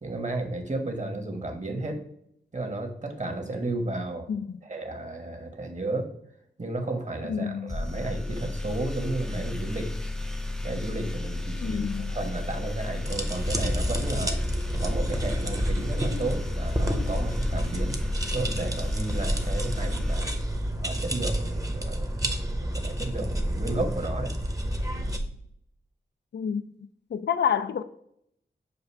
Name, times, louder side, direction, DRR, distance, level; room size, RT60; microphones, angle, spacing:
voice 1, 0.0-2.0 2.5-4.3 4.6-6.1 6.6-9.9 10.6-14.4 14.8-18.0 18.3-20.3 20.8-22.2 22.6-24.3, right 2 dB, 40° right, 1.2 m, -33 dB
voice 2, 7.3-7.7 11.6-12.2 26.3-26.6 27.1-27.8, left 7 dB, 70° left, 0.4 m, -28 dB
sound 1, 7.7-21.1, left 2 dB, 5° left, 0.5 m, -33 dB
sound 2, 13.1-25.2, right 1 dB, 20° right, 0.8 m, -29 dB
6.7 x 2.6 x 5.4 m
wide cardioid pair, 80°, 19 cm